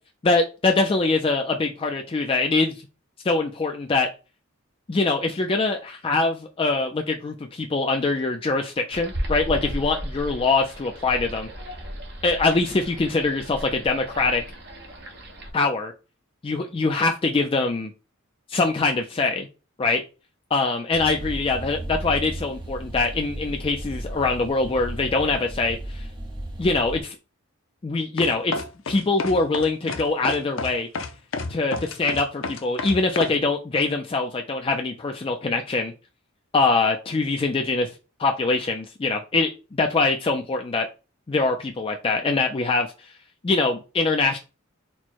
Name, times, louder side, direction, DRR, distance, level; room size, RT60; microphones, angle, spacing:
voice 1, 0.2-2.7 3.2-4.1 4.9-11.5 12.2-14.4 15.5-15.9 16.4-17.9 18.5-19.5 19.8-20.0 20.5-26.0 26.6-27.2 27.8-28.6 28.9-30.9 31.5-35.9 36.5-37.9 38.2-39.5 39.8-40.9 41.3-42.9 43.4-44.4, left 3 dB, 25° left, 3 dB, 0.4 m, -23 dB
sound 1, 8.9-15.5, equal, 55° right, 1.1 m, -35 dB
sound 2, 20.9-27.0, right 1 dB, 25° right, 0.8 m, -35 dB
sound 3, 28.2-33.4, left 3 dB, 75° left, 0.6 m, -30 dB
4.5 x 2.1 x 4.2 m, 0.31 s
head